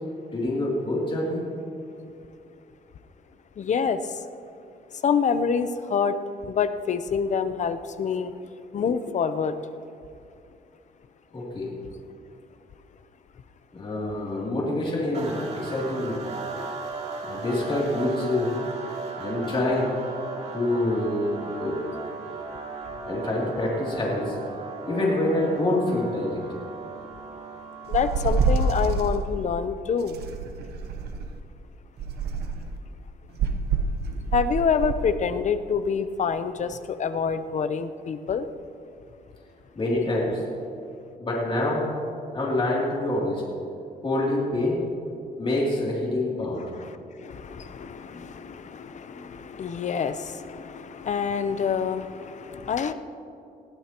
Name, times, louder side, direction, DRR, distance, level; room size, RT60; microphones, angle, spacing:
voice 1, 0.3-1.4 11.3-11.7 13.7-16.2 17.2-18.6 19.2-20.0 20.5-21.8 23.0-24.4 24.9-26.4 39.7-40.4 41.2-41.9 42.3-43.4 44.0-44.8 45.4-46.7 48.0-48.3 48.8-49.3, left 1 dB, 30° left, -4 dB, 3.0 m, -26 dB
voice 2, 3.6-4.0 5.0-6.1 6.5-8.3 8.7-9.5 27.9-30.2 34.3-38.4 46.5-46.9 47.2-52.9, left 6 dB, 45° left, 11 dB, 0.7 m, -27 dB
sound 1, 15.1-29.3, right 4 dB, 40° right, 2.5 m, -37 dB
sound 2, 27.9-29.2 30.1-31.3 32.0-32.7 33.4-35.0, right 4 dB, 90° right, 1.0 m, -26 dB
20.5 x 15.5 x 3.0 m, 2.5 s
cardioid pair, 120°, 16 cm